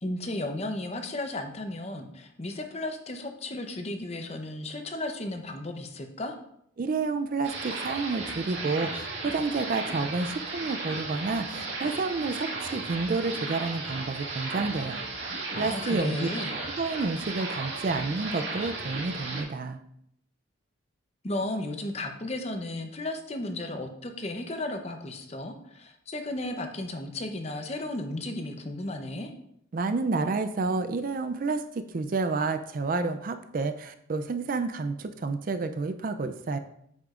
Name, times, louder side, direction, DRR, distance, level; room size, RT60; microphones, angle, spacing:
voice 1, 0.0-6.4 15.5-16.5 21.2-29.3, left 2 dB, 30° left, 5 dB, 0.7 m, -34 dB
voice 2, 6.8-15.0 15.6-16.3 16.8-19.8 29.7-36.6, right 3 dB, 40° right, 9 dB, 0.4 m, -30 dB
sound 1, 7.4-19.4, right 3 dB, 65° right, 1.8 m, -35 dB
8.6 x 6.4 x 2.4 m, 0.73 s
head